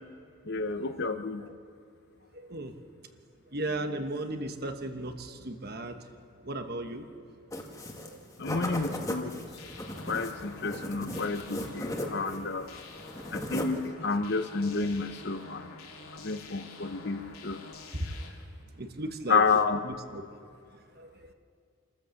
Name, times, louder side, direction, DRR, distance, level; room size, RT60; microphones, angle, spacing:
voice 1, 0.5-1.4 8.4-9.3 10.1-12.8 13.3-15.8 16.1-17.6 19.3-19.8, left 4 dB, 50° left, 9 dB, 0.9 m, -30 dB
voice 2, 2.3-2.7 3.5-6.0 6.4-7.0 8.0-8.5 10.6-10.8 18.8-19.4 19.8-20.2 21.0-21.1, right 2 dB, 45° right, 7 dB, 1.3 m, -36 dB
sound 1, 7.5-8.1 8.4-12.4 12.7-13.9, left 1 dB, 15° left, 1.6 m, -36 dB
sound 2, 9.6-18.3, left 3 dB, 80° left, 2.9 m, -48 dB
27.5 x 14.0 x 7.1 m, 2.3 s
head